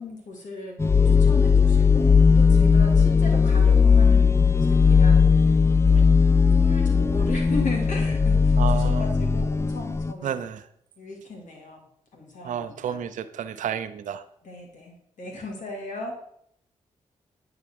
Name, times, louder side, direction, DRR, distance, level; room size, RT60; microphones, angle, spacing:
voice 1, 0.0-2.1 2.3-5.6 5.9-6.1 6.5-10.4 11.0-11.8 12.1-13.0 14.4-16.2, left 3 dB, 75° left, 1 dB, 2.9 m, -37 dB
sound 1, 0.8-10.1, left 5 dB, 20° left, 0.4 m, -18 dB
voice 2, 8.6-9.0 10.2-10.6 12.4-14.2, right 8 dB, 80° right, 12 dB, 0.7 m, -31 dB
9.2 x 4.8 x 6.5 m, 0.69 s
supercardioid pair, 45°, 13 cm